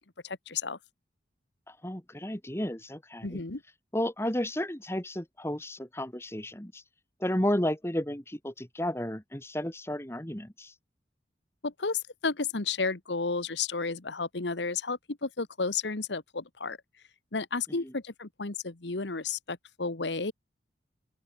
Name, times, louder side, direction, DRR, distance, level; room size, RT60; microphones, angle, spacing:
voice 1, 0.2-0.8 3.2-3.6 11.6-16.8 17.3-20.3, left 4 dB, 80° left, 1.4 m, -32 dB
voice 2, 1.7-3.4 3.9-6.8 7.2-10.7 17.8-17.9, left 1 dB, 15° left, 2.2 m, -32 dB
open air
head